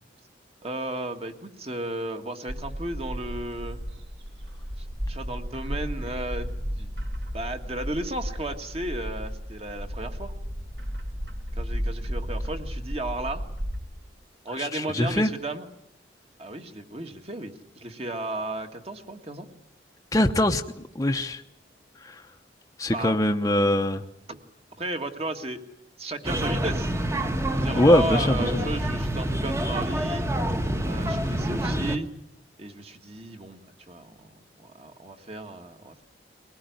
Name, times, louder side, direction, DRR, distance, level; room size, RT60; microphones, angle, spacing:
voice 1, 0.6-3.8 4.8-6.5 6.8-7.0 7.3-10.3 11.6-13.4 14.4-15.7 16.4-19.5 22.9-23.2 24.3-24.4 24.8-25.6 26.0-26.9 27.5-30.3 30.8-32.1 32.6-33.6 33.9-34.3 34.6-36.0, right 2 dB, 35° right, 6 dB, 1.8 m, -34 dB
Bird, 2.5-13.8, equal, 70° right, 3.0 m, -34 dB
voice 2, 14.6-15.3 20.1-20.6 20.9-21.4 22.0-22.2 22.8-24.1 27.7-28.7, left 1 dB, 20° left, 4 dB, 0.8 m, -22 dB
sound 1, 26.2-32.0, right 1 dB, 15° right, 1.2 m, -27 dB
22.0 x 19.0 x 9.4 m, 0.77 s
head